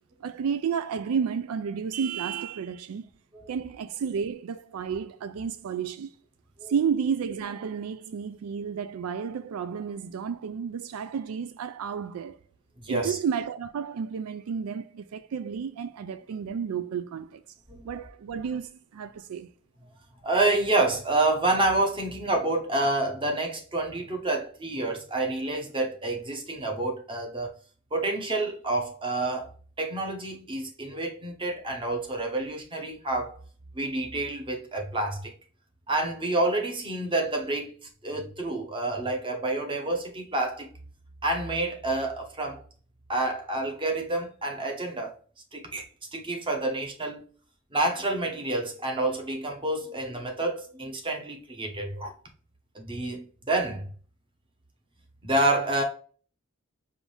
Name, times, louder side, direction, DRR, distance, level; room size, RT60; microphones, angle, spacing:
voice 1, 0.2-3.1 3.5-6.1 6.7-12.4 12.9-17.4 17.8-19.5, right 7 dB, 85° right, 0.4 m, -31 dB
voice 2, 12.8-13.2 17.7-17.8 20.2-27.5 27.9-29.5 29.8-33.4 33.7-35.3 35.9-37.7 38.0-40.7 41.2-42.6 43.1-45.2 45.5-45.8 46.1-47.2 47.7-52.1 52.7-53.9 55.2-55.8, right 2 dB, 25° right, 1.0 m, -28 dB
4.8 x 2.7 x 3.2 m
head